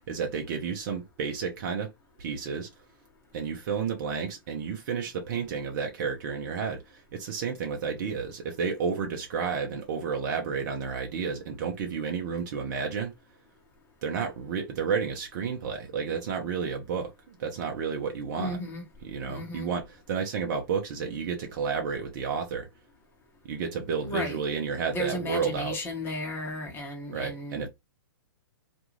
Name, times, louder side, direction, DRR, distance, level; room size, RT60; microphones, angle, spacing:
voice 1, 0.0-1.9 2.2-2.7 3.3-13.1 14.0-18.6 19.0-22.7 23.5-25.8 27.1-27.7, right 6 dB, 50° right, 0.7 m, -31 dB
voice 2, 18.3-18.8 19.2-19.7 24.0-24.4 24.9-27.7, left 1 dB, 20° left, 1.0 m, -34 dB
2.5 x 2.3 x 3.0 m
hypercardioid pair, 130°, 12 cm